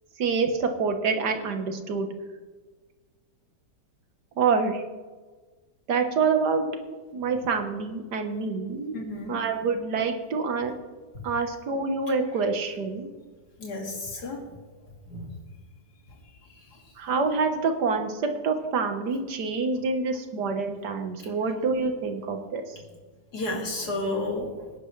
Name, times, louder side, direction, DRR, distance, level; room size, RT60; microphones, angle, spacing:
voice 1, 0.2-2.1 4.4-4.8 5.9-6.7 7.1-9.0 9.3-10.7 11.2-13.1 17.0-22.6, right 4 dB, 70° right, 6 dB, 1.8 m, -26 dB
voice 2, 8.9-9.4 13.6-14.4 15.1-15.4 21.2-21.3 23.3-24.5, left 2 dB, 65° left, 0 dB, 3.0 m, -31 dB
21.0 x 10.5 x 3.3 m, 1.4 s
omnidirectional pair, 1.8 m